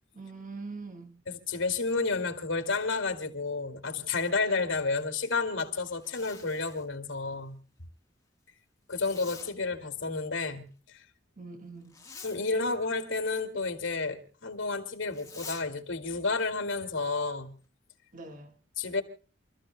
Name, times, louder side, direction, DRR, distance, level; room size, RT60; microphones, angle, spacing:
voice 1, 0.1-1.2 11.4-12.0 18.1-18.6, right 3 dB, 40° right, 1.5 m, -43 dB
voice 2, 1.3-7.6 8.9-11.0 12.2-17.6 18.8-19.0, left 3 dB, 75° left, 2.3 m, -31 dB
Zipper (clothing), 5.8-6.9 8.9-9.5 11.9-12.4 15.1-15.6, left 5 dB, 15° left, 1.4 m, -47 dB
29.0 x 14.5 x 2.2 m
head